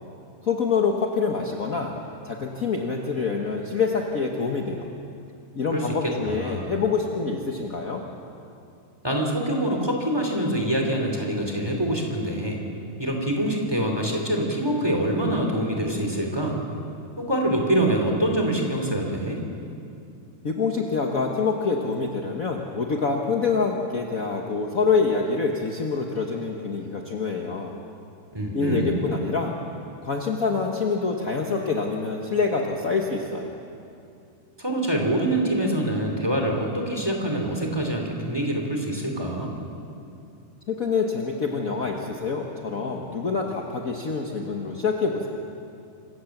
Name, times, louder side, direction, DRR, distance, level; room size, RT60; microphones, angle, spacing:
voice 1, 0.4-1.9 2.2-4.9 5.5-8.0 20.4-27.7 28.5-29.5 30.0-33.5 40.7-45.3, left 4 dB, 55° left, 1 dB, 0.9 m, -26 dB
voice 2, 5.7-6.6 9.0-12.6 13.0-16.6 17.2-19.4 28.3-29.0 34.6-39.5, right 1 dB, 10° right, 1 dB, 2.6 m, -25 dB
25.5 x 16.0 x 7.3 m, 2.6 s
omnidirectional pair, 3.4 m